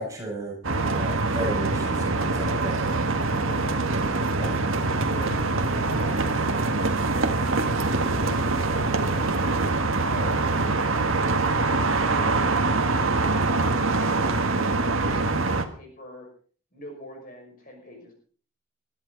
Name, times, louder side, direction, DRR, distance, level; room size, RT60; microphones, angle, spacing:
voice 1, 0.0-2.9 4.3-4.6, right 1 dB, 15° right, -1 dB, 6.4 m, -34 dB
sound 1, 0.6-15.6, right 3 dB, 75° right, 1.8 m, -24 dB
voice 2, 3.3-4.1 4.6-4.8 5.0-6.6 7.3-7.9 8.2-9.6 10.0-11.0 11.3-12.9 13.4-13.8 14.2-16.3 16.7-18.1, left 1 dB, 40° left, 2 dB, 5.9 m, -43 dB
23.0 x 13.5 x 4.1 m, 0.44 s
head